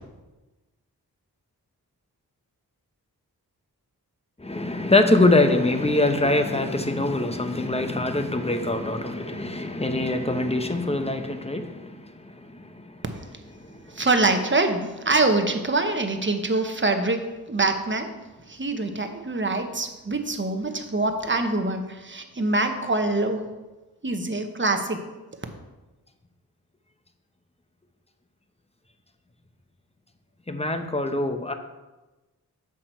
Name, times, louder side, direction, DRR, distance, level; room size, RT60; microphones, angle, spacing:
voice 1, 4.4-13.1 13.6-14.0 30.5-31.5, left 2 dB, 15° left, 7 dB, 0.9 m, -24 dB
voice 2, 14.0-17.2 17.5-18.1 18.5-23.4 24.0-25.0, right 2 dB, 30° right, 6 dB, 1.1 m, -24 dB
7.1 x 5.9 x 4.5 m, 1.1 s
cardioid pair, 40°, 38 cm